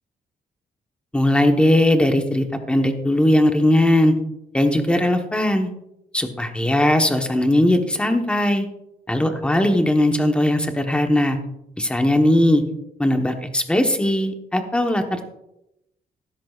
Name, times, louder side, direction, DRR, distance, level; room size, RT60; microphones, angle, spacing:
voice 1, 1.1-4.1 4.5-5.7 6.1-8.7 9.1-11.4 11.8-12.6 13.0-15.2, left 1 dB, 5° left, 5 dB, 1.1 m, -19 dB
15.5 x 13.0 x 2.4 m, 0.85 s
wide cardioid pair, 170°, 16 cm